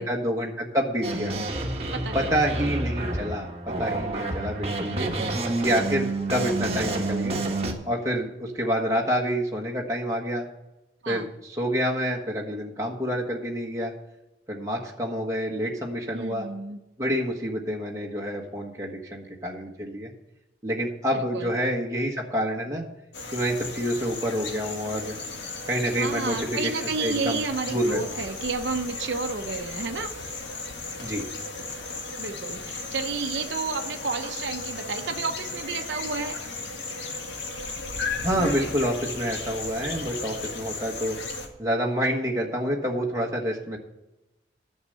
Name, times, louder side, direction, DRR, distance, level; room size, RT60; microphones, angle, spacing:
voice 1, 0.0-1.4 2.1-5.1 5.6-7.4 7.8-10.5 11.1-13.9 14.5-16.5 17.0-20.1 20.6-22.8 23.3-25.2 25.7-26.4 26.6-27.4 27.7-28.0 31.0-31.2 38.2-41.2 41.6-43.8, equal, 20° right, -2 dB, 1.4 m, -28 dB
sound 1, 1.0-7.7, right 2 dB, 35° right, 1.5 m, -29 dB
voice 2, 1.9-2.3 2.5-2.6 5.0-5.4 11.0-11.3 16.1-16.8 21.1-21.5 26.0-30.3 32.2-36.4, right 4 dB, 85° right, 5 dB, 0.8 m, -31 dB
sound 2, 23.1-41.5, left 3 dB, 85° left, 1.7 m, -35 dB
11.0 x 6.6 x 7.9 m, 0.97 s
head